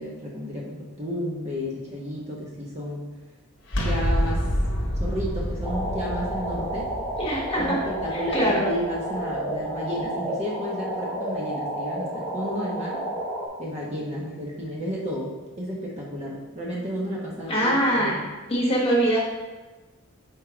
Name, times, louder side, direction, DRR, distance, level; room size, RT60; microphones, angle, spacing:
voice 1, 0.0-3.1 3.8-4.4 5.0-6.9 7.6-13.0 13.6-18.2, equal, 30° right, -4 dB, 0.9 m, -32 dB
sound 1, 3.7-9.4, equal, 55° left, 0.9 m, -28 dB
sound 2, 5.6-13.5, right 1 dB, 5° right, 1.3 m, -31 dB
voice 2, 7.2-7.8 8.1-8.6 17.5-18.1 18.5-19.2, right 1 dB, 25° left, -5 dB, 1.5 m, -23 dB
4.6 x 4.3 x 5.0 m, 1.2 s
head